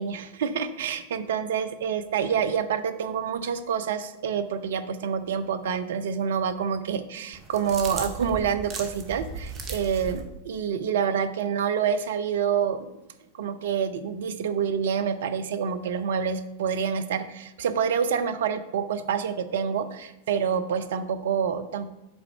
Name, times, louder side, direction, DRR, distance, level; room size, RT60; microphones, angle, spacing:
voice 1, 0.0-12.9 13.4-21.9, right 7 dB, 60° right, 11 dB, 0.5 m, -27 dB
sound 1, 7.3-10.2, right 4 dB, 30° right, 0.9 m, -36 dB
5.3 x 4.1 x 5.6 m, 0.92 s
figure-of-eight pair, 90°, 0 cm